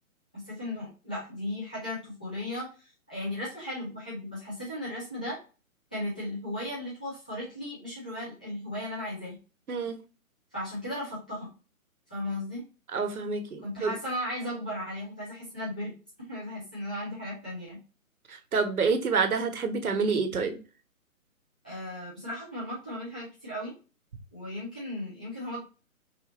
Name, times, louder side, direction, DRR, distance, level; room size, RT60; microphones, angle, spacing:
voice 1, 0.3-5.4 5.9-9.4 10.5-11.5 12.1-12.6 13.6-15.9 16.3-17.8 21.6-23.7 24.3-25.6, left 1 dB, 5° left, -9 dB, 0.5 m, -36 dB
voice 2, 12.9-13.9 18.3-20.6, right 4 dB, 85° right, 6 dB, 1.4 m, -28 dB
5.6 x 2.7 x 3.0 m, 0.33 s
hypercardioid pair, 160°, 42 cm